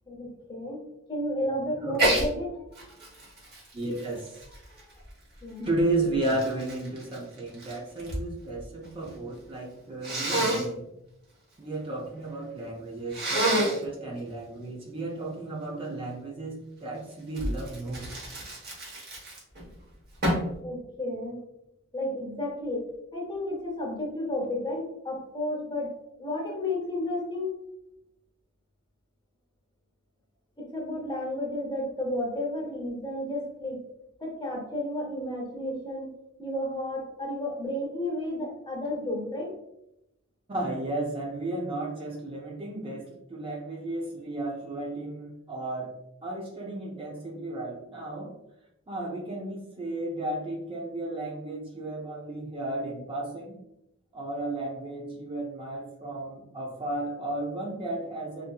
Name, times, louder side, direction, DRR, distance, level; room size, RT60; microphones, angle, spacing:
voice 1, 0.1-0.8 1.1-2.6 5.4-5.7 20.6-21.4 21.9-27.6 30.6-33.8 34.2-36.1 36.4-39.6, left 1 dB, 20° left, -1 dB, 0.6 m, -32 dB
Sneeze, 1.9-2.3 2.7-5.1 5.8-8.2 8.5-9.2 10.0-10.7 13.1-13.8 17.3-19.6 20.2-20.5, right 1 dB, 50° right, 0.8 m, -29 dB
voice 2, 3.7-4.4 5.6-10.9 11.6-18.1 40.5-45.9 46.2-48.3 48.9-53.6 54.1-58.5, right 2 dB, 25° right, -2 dB, 0.4 m, -33 dB
2.6 x 2.6 x 2.2 m, 0.82 s
head